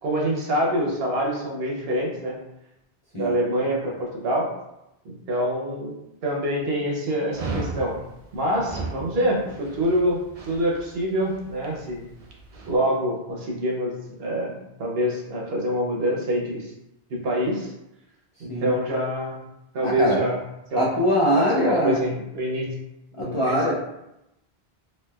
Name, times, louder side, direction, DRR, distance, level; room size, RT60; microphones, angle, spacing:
voice 1, 0.0-2.4 3.1-4.5 5.0-5.9 6.2-8.0 8.3-12.1 12.7-13.9 14.2-16.7 17.1-17.7 18.4-19.4 19.7-20.4 20.7-20.9 21.3-22.7 23.2-23.6, equal, 70° right, -1 dB, 1.0 m, -25 dB
Dog, 7.3-12.7, right 3 dB, 50° right, 0.5 m, -36 dB
voice 2, 19.8-20.2 20.8-22.0 23.2-23.8, equal, 45° left, -6 dB, 0.4 m, -22 dB
3.2 x 2.9 x 2.2 m, 0.87 s
omnidirectional pair, 1.1 m